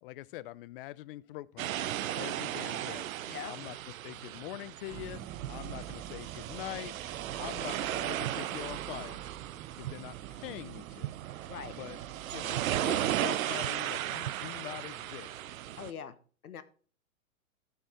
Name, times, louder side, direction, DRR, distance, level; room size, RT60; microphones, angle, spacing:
voice 1, 0.0-3.1 3.5-3.7 4.0-7.0 7.4-9.2 9.8-11.1 11.8-12.0 12.3-15.3, left 16 dB, 40° left, 0.4 m, -44 dB
sound 1, 1.6-15.9, right 12 dB, 70° right, 0.7 m, -36 dB
sound 2, 3.1-9.1, right 11 dB, 55° right, 1.2 m, -60 dB
sound 3, 4.9-13.5, right 11 dB, 15° right, 0.4 m, -48 dB
voice 2, 15.8-16.2 16.4-16.6, left 7 dB, 85° left, 1.2 m, -42 dB
12.5 x 5.8 x 4.3 m
hypercardioid pair, 115°, 43 cm